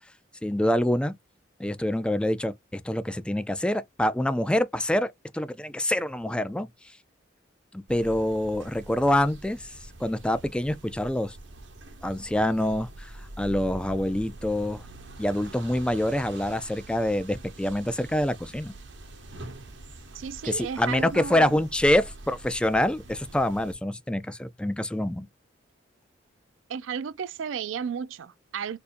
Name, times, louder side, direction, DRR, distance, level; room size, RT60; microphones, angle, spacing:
voice 1, 0.4-1.1 1.6-6.7 7.7-9.7 10.0-11.4 12.0-14.8 15.2-18.7 20.4-25.3, left 1 dB, 5° left, 0.3 m, -26 dB
sound 1, 7.9-23.7, right 1 dB, 65° right, 1.0 m, -44 dB
voice 2, 20.1-21.6 26.7-28.8, right 7 dB, 80° right, 0.4 m, -33 dB
4.3 x 2.6 x 2.5 m
head